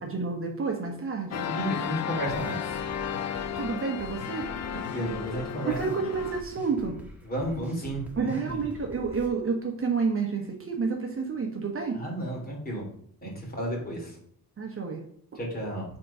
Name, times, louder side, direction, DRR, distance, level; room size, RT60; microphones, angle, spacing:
voice 1, 0.0-1.5 3.5-4.5 5.7-7.0 8.2-12.0 14.6-15.0, right 5 dB, 35° right, 2 dB, 1.1 m, -30 dB
sound 1, 1.3-6.4, left 8 dB, 45° left, 0.6 m, -34 dB
voice 2, 1.5-2.8 4.7-5.8 7.2-8.6 11.9-12.8 13.2-14.2 15.4-15.9, right 1 dB, 25° left, -1 dB, 2.6 m, -33 dB
sound 2, 2.3-9.3, left 1 dB, 5° right, 1.4 m, -45 dB
7.6 x 3.8 x 5.5 m, 0.66 s
cardioid pair, 125°, 36 cm